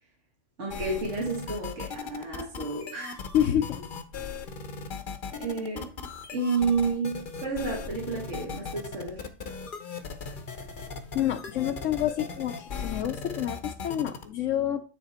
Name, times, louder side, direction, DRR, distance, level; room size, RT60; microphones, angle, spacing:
voice 1, 0.6-3.2 5.4-5.9 6.3-9.2, right 4 dB, 60° right, 1.9 m, -30 dB
sound 1, 0.7-14.2, left 5 dB, 45° left, 0.9 m, -38 dB
voice 2, 3.3-3.8 11.1-14.8, left 11 dB, 70° left, 0.9 m, -28 dB
9.2 x 3.6 x 4.3 m
omnidirectional pair, 1.4 m